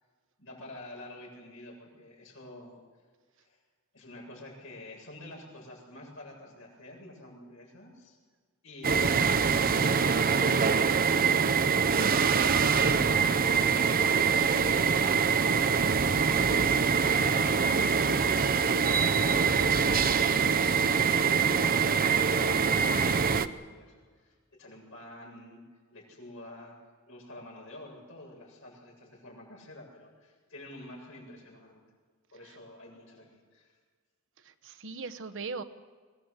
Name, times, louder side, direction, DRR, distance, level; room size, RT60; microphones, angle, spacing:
voice 1, 0.4-2.8 3.4-3.6 3.9-8.2 8.6-10.5 11.3-13.8 14.4-18.4 18.8-21.7 22.3-25.6 25.9-26.7 27.1-31.8 32.3-33.8, left 1 dB, 65° left, -1 dB, 7.9 m, -48 dB
sound 1, 8.8-23.5, right 5 dB, 40° right, 0.7 m, -24 dB
voice 2, 12.0-13.1 32.4-32.6 34.4-35.6, right 3 dB, 60° right, 10 dB, 1.1 m, -39 dB
23.0 x 18.5 x 8.1 m, 1.5 s
head